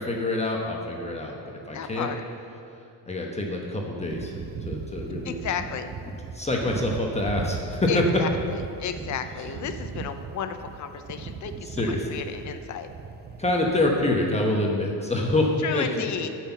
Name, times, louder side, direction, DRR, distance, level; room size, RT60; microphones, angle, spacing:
voice 1, 0.0-2.1 3.1-4.3 4.7-5.3 6.3-8.0 11.7-12.1 13.4-15.9 16.2-16.3, left 2 dB, 15° left, -1 dB, 0.9 m, -26 dB
voice 2, 1.7-2.2 5.2-5.9 7.9-12.9 15.6-16.3, left 7 dB, 45° left, 8 dB, 0.7 m, -33 dB
sound 1, 4.0-14.2, right 5 dB, 25° right, 0.3 m, -38 dB
8.3 x 5.9 x 7.1 m, 2.5 s
cardioid pair, 120°, 42 cm